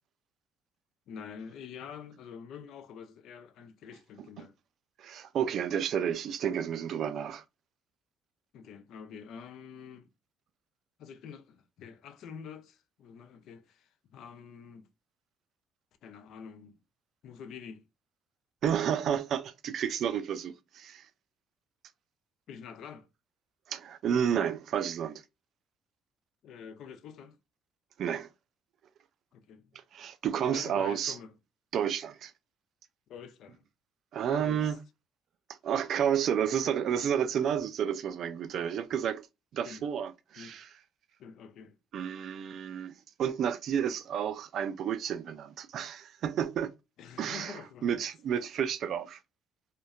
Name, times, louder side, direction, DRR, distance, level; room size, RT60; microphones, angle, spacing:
voice 1, 1.1-4.5 8.5-10.1 11.0-14.9 16.0-16.8 17.2-17.8 22.5-23.1 26.4-27.4 29.3-29.8 30.5-31.3 33.1-33.6 34.3-34.8 39.6-39.8 40.4-40.6 41.2-41.8 47.0-48.0 48.3-48.4, left 7 dB, 70° left, 0.4 m, -47 dB
voice 2, 5.0-7.4 18.6-21.1 23.7-25.2 28.0-28.3 29.9-31.2 31.7-32.3 34.1-34.8 35.6-39.3 39.5-40.7 41.9-46.7 47.2-49.2, right 8 dB, 60° right, 0.3 m, -31 dB
2.6 x 2.1 x 2.4 m
supercardioid pair, 85°, 0 cm